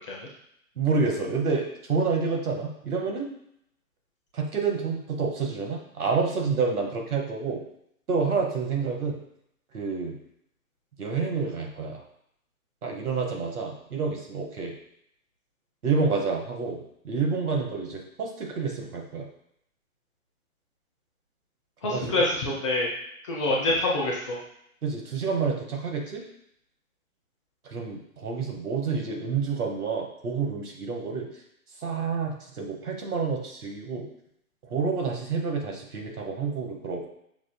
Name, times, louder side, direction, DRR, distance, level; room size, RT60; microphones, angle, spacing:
voice 1, 0.8-3.3 4.3-7.6 8.1-9.2 9.7-10.1 11.0-12.0 12.8-14.7 15.8-19.3 21.8-22.2 23.5-23.6 24.8-26.2 27.6-31.3 31.8-34.1 34.6-37.1, right 4 dB, 85° right, 1 dB, 1.2 m, -28 dB
voice 2, 21.8-22.9 23.2-24.4, left 2 dB, 20° left, -4 dB, 0.5 m, -26 dB
5.9 x 2.5 x 2.2 m, 0.73 s
hypercardioid pair, 135°, 44 cm